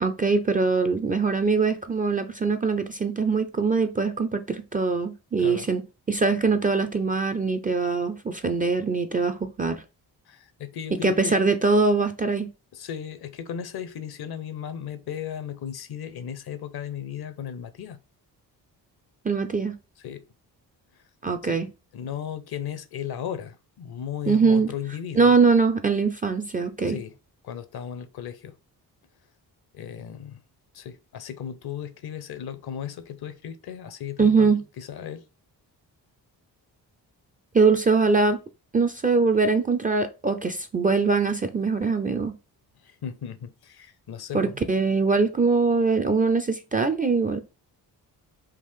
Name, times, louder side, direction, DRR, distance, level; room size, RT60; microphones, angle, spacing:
voice 1, 0.0-5.8 6.1-9.8 11.0-12.5 19.2-19.8 21.2-21.7 24.3-24.7 25.2-27.0 34.2-34.6 37.5-38.4 38.7-42.3 44.3-47.4, right 4 dB, 20° right, 0.4 m, -22 dB
voice 2, 10.3-11.4 12.7-18.0 20.0-20.2 21.4-21.6 21.9-25.3 26.8-27.1 27.4-28.6 29.7-30.4 30.7-35.2 42.8-44.5, left 9 dB, 55° left, 0.6 m, -36 dB
3.7 x 2.4 x 3.2 m
supercardioid pair, 45°, 47 cm